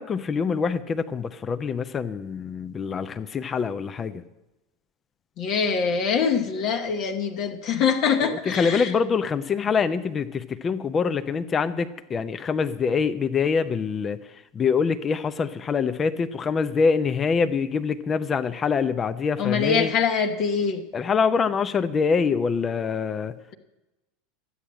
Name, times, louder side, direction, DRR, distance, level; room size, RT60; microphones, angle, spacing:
voice 1, 0.0-4.2 8.5-14.2 14.5-19.9 20.9-23.3, left 5 dB, 30° left, 11 dB, 0.7 m, -25 dB
voice 2, 5.4-9.0 19.4-20.8, left 6 dB, 50° left, 4 dB, 1.2 m, -24 dB
12.5 x 8.9 x 7.4 m, 1.0 s
figure-of-eight pair, 80°, 0 cm